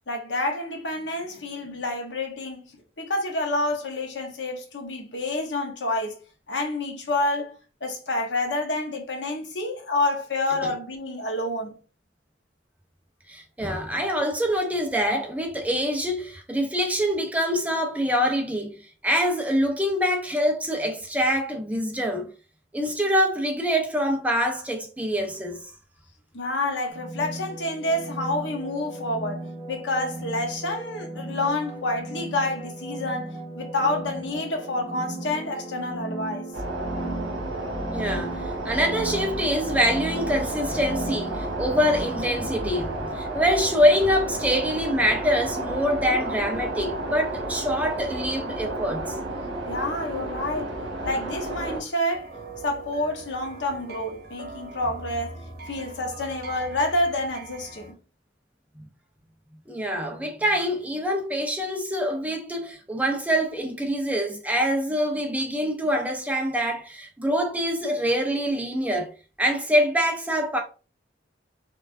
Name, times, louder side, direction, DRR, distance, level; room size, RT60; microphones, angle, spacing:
voice 1, 0.1-2.7 3.0-6.2 6.5-7.5 7.8-11.8 26.3-36.5 49.7-50.7 51.0-52.3 52.6-58.0, left 2 dB, 70° left, 0.9 m, -28 dB
voice 2, 13.3-18.8 19.0-22.3 22.7-25.6 37.9-38.3 38.6-49.2 59.7-69.1 69.4-70.6, equal, 10° right, 0.5 m, -25 dB
sound 1, 26.9-42.9, right 2 dB, 10° left, 0.9 m, -36 dB
sound 2, 36.5-51.8, right 1 dB, 75° right, 1.2 m, -32 dB
sound 3, 52.1-57.9, right 3 dB, 55° right, 0.6 m, -42 dB
4.4 x 2.5 x 2.5 m
head